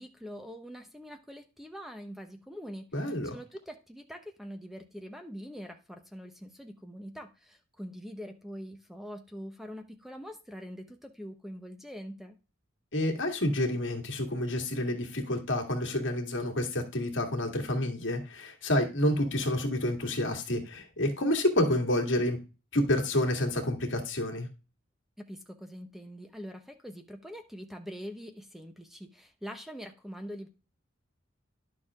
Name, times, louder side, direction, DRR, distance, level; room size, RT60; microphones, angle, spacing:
voice 1, 0.0-12.4 25.2-30.5, equal, ahead, 5 dB, 1.0 m, -44 dB
voice 2, 2.9-3.3 12.9-22.4 22.7-24.5, left 1 dB, 70° left, 2 dB, 2.2 m, -29 dB
11.0 x 6.7 x 3.7 m, 0.31 s
head